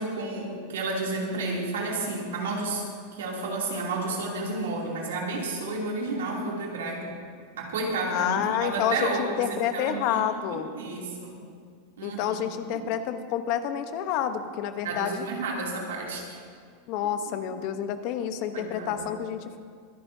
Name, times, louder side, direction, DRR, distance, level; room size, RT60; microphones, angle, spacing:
voice 1, 0.0-2.8 3.1-7.1 7.6-10.2 10.5-11.4 12.0-12.2 12.6-12.8 14.8-16.2 18.5-19.1, right 3 dB, 90° right, -2 dB, 2.9 m, -31 dB
voice 2, 8.1-10.7 12.0-15.2 16.9-19.6, left 9 dB, 55° left, 9 dB, 1.0 m, -29 dB
23.0 x 11.0 x 2.8 m, 2.1 s
supercardioid pair, 120°, 0 cm